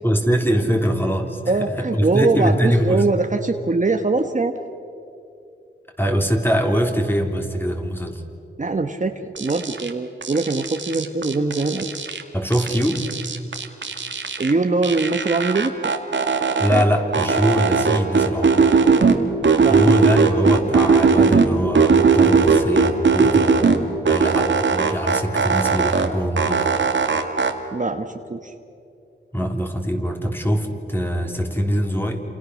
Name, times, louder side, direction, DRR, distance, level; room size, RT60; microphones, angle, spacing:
voice 1, 0.0-3.1 6.0-8.2 12.3-13.1 16.6-18.6 19.7-26.7 29.3-32.2, equal, 10° left, 2 dB, 3.7 m, -22 dB
voice 2, 1.5-4.5 8.6-11.9 14.4-15.9 19.5-20.2 27.7-28.5, right 3 dB, 40° right, 6 dB, 1.4 m, -22 dB
sound 1, 9.4-9.9 10.2-12.2 12.5-14.5 14.8-16.8 17.1-19.2 19.4-21.5 21.8-23.8 24.1-26.1 26.4-27.5, right 5 dB, 65° right, 2.2 m, -18 dB
29.5 x 28.0 x 6.5 m, 2.6 s
cardioid pair, 60°, 20 cm